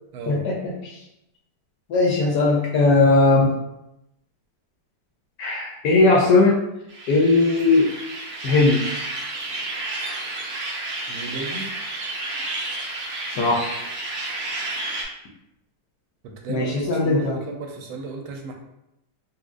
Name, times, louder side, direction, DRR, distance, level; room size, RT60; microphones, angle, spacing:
voice 1, 0.3-1.0 1.9-3.5 5.4-6.6 7.1-7.9 8.4-8.8 13.3-13.9 16.5-17.4, left 3 dB, 75° left, -2 dB, 1.0 m, -19 dB
sound 1, 6.9-15.0, right 2 dB, 65° right, 0.9 m, -31 dB
voice 2, 11.1-11.7 16.2-18.5, right 3 dB, 85° right, 2 dB, 1.4 m, -34 dB
4.0 x 2.6 x 2.4 m, 0.87 s
omnidirectional pair, 2.2 m